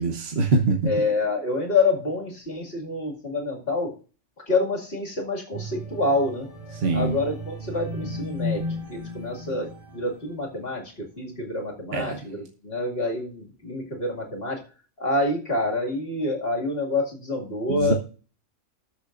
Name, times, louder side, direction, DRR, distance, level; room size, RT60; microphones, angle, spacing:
voice 1, 0.0-0.7 6.8-7.2 11.9-12.2 17.7-17.9, right 3 dB, 55° right, 3 dB, 1.3 m, -23 dB
voice 2, 0.8-3.9 4.5-6.5 6.9-14.6 15.0-17.9, left 2 dB, 50° left, 0 dB, 2.5 m, -27 dB
sound 1, 5.5-10.8 11.3-11.5, left 1 dB, 25° right, 4.3 m, -35 dB
19.0 x 6.7 x 2.6 m, 0.38 s
omnidirectional pair, 1.3 m